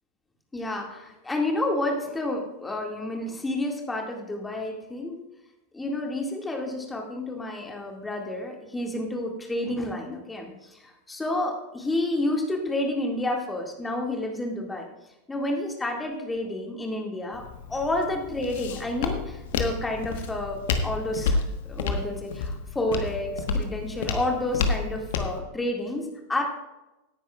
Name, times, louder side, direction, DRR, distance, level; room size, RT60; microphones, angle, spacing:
voice 1, 0.5-5.2 5.7-14.9 15.3-17.4 17.7-21.4 21.7-26.4, left 1 dB, 10° left, 1 dB, 2.0 m, -30 dB
Walk footsteps, 17.3-25.4, left 4 dB, 55° left, 1.2 m, -30 dB
17.5 x 9.9 x 2.4 m, 1.0 s
figure-of-eight pair, 90°, 0 cm